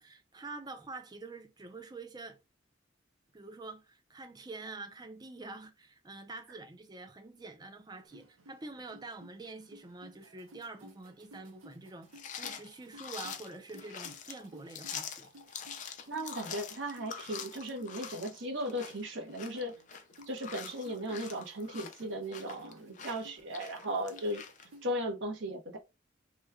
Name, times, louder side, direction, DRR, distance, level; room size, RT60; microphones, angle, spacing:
voice 1, 0.0-2.4 3.3-12.1 12.4-15.3, right 3 dB, 20° right, 0.5 m, -46 dB
sound 1, 8.1-24.9, right 1 dB, 90° right, 0.8 m, -57 dB
sound 2, 12.1-24.7, left 7 dB, 40° left, 0.5 m, -45 dB
voice 2, 16.1-19.7 20.3-24.4 24.8-25.8, equal, 65° right, 1.1 m, -36 dB
3.0 x 2.2 x 3.5 m
head